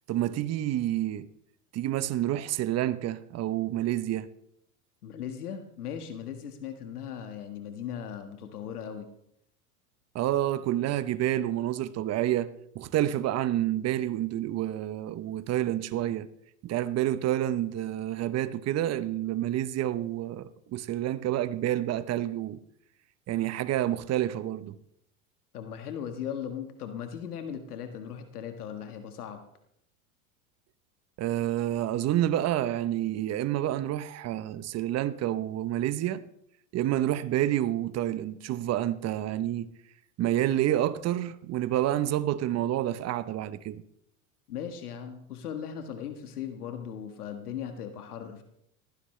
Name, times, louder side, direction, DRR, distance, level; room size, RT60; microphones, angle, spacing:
voice 1, 0.1-1.3 1.7-4.3 10.1-16.3 16.6-22.6 23.3-24.8 31.2-36.2 36.7-39.7 40.2-43.8, right 13 dB, 35° right, 1.0 m, -28 dB
voice 2, 5.0-9.1 25.5-29.4 44.5-48.4, left 8 dB, 85° left, 1.7 m, -38 dB
19.0 x 15.5 x 3.3 m
hypercardioid pair, 100°, 44 cm